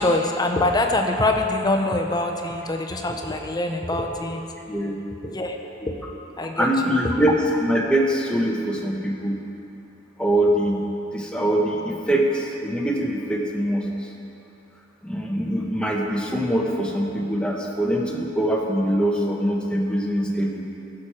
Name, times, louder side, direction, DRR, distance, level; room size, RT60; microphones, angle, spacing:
voice 1, 0.0-4.5 5.2-5.8 6.4-6.7, left 2 dB, 20° left, 3 dB, 0.7 m, -24 dB
voice 2, 6.6-7.3 7.6-9.4 10.2-10.8 11.1-13.8 15.0-20.6, right 1 dB, 5° left, -2 dB, 1.0 m, -23 dB
14.5 x 6.5 x 4.3 m, 2.8 s
head